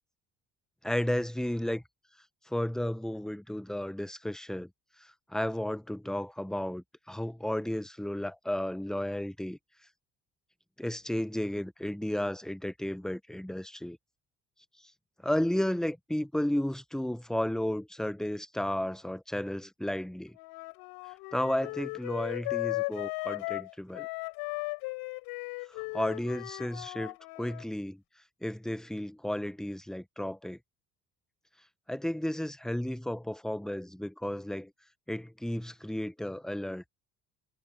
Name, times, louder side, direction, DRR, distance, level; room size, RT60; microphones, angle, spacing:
voice 1, 0.8-1.8 2.5-4.7 5.0-9.6 10.8-14.0 15.2-20.4 21.3-24.1 25.7-28.0 28.4-30.6 31.9-34.7 35.1-36.8, left 1 dB, ahead, 1.0 m, -33 dB
Wind instrument woodwind instrument, 20.3-27.6, left 26 dB, 85° left, 4.6 m, -37 dB
supercardioid pair, 65°, 38 cm